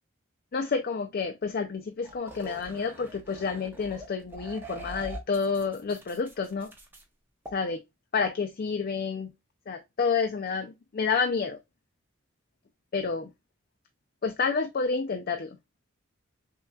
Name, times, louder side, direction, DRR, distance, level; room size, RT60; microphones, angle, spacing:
voice 1, 0.5-6.7 7.5-7.8 8.1-9.3 9.7-11.6 12.9-13.3 14.2-15.6, left 5 dB, 45° left, 0.4 m, -29 dB
sound 1, 2.0-7.0 7.5-7.6, right 1 dB, 10° right, 0.7 m, -43 dB
5.7 x 2.4 x 2.2 m
head